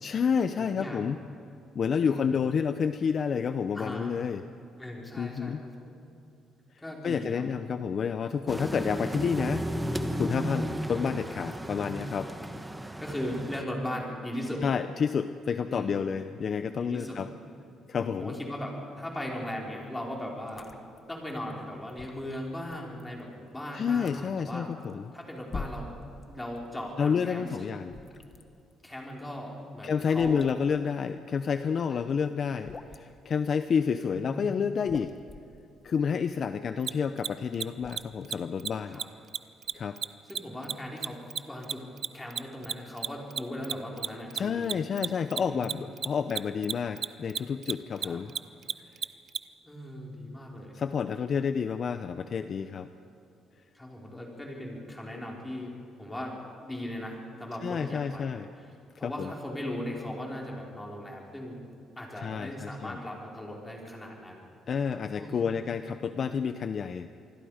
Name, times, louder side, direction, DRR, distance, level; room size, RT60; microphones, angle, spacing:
voice 1, 0.0-1.2 1.7-4.4 5.2-5.6 7.0-9.7 10.1-12.3 14.6-17.3 17.9-18.3 23.7-25.1 27.0-27.9 29.8-35.1 35.8-39.0 39.7-40.0 44.3-48.3 50.7-52.9 57.6-58.5 59.0-59.3 62.2-63.0 64.7-67.2, left 6 dB, 45° left, 10 dB, 0.7 m, -29 dB
voice 2, 0.7-1.1 2.0-2.4 3.7-4.2 4.8-5.9 6.8-7.6 13.0-14.6 15.7-16.0 16.8-17.2 17.9-20.7 21.1-24.7 25.1-25.9 26.3-27.8 28.8-30.5 31.9-32.2 34.0-34.5 38.9-39.1 40.3-41.8 42.1-44.8 45.4-45.8 48.0-48.2 49.6-50.7 53.7-56.4 56.6-58.7 59.0-61.6 62.0-64.5 64.8-64.9 65.1-65.6, left 1 dB, 10° left, -2 dB, 4.9 m, -38 dB
sound 1, 8.5-13.6, right 1 dB, 10° right, 1.2 m, -34 dB
sound 2, 20.5-26.7 26.9-32.0 32.4-33.2 33.8-34.3 34.6-38.5, left 3 dB, 30° left, 1.4 m, -45 dB
Mechanisms, 36.8-36.9 37.2-37.3 37.5-37.6 37.9-38.0 38.2-38.3 38.6-38.7 38.9-39.0 39.3-42.1 42.3-49.4, right 9 dB, 55° right, 0.6 m, -31 dB
27.0 x 21.0 x 5.1 m, 2.6 s
cardioid pair, 120°, 0 cm